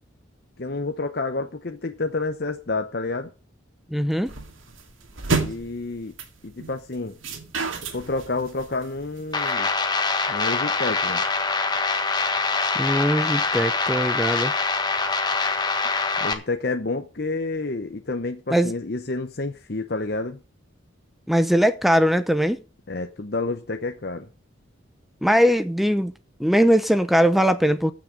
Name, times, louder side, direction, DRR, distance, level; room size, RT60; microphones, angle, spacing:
voice 1, 0.6-3.3 5.3-6.1 6.4-7.2 7.9-9.7 10.3-11.2 16.2-20.4 22.9-24.3, left 3 dB, 50° left, 0.8 m, -29 dB
voice 2, 3.9-4.3 12.8-14.5 18.5-18.7 21.3-22.6 25.2-26.1 26.4-27.9, equal, ahead, 0.6 m, -20 dB
sound 1, 4.3-9.5, right 3 dB, 85° right, 2.3 m, -30 dB
sound 2, 9.3-16.3, left 4 dB, 20° left, 1.4 m, -24 dB
15.0 x 6.3 x 6.4 m
head